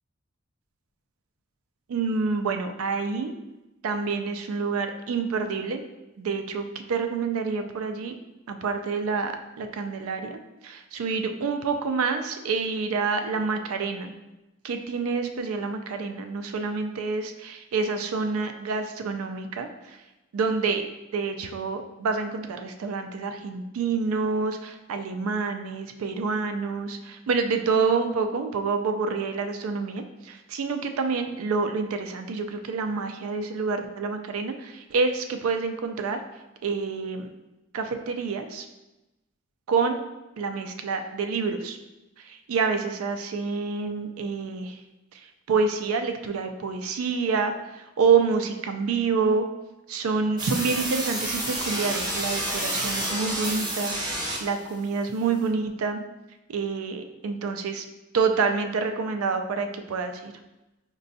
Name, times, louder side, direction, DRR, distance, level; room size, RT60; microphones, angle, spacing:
voice 1, 1.9-3.3 3.8-5.8 6.2-8.1 8.5-14.1 14.6-20.0 20.3-20.9 21.1-36.2 36.6-37.3 37.7-38.7 39.7-40.0 40.4-41.8 42.2-44.8 45.5-49.4 49.9-54.0 54.4-56.0 56.5-57.9 58.1-60.3, right 4 dB, 90° right, 7 dB, 0.4 m, -27 dB
sound 1, 50.4-54.7, right 1 dB, 20° right, 0.6 m, -29 dB
5.0 x 2.2 x 2.6 m, 1.0 s
head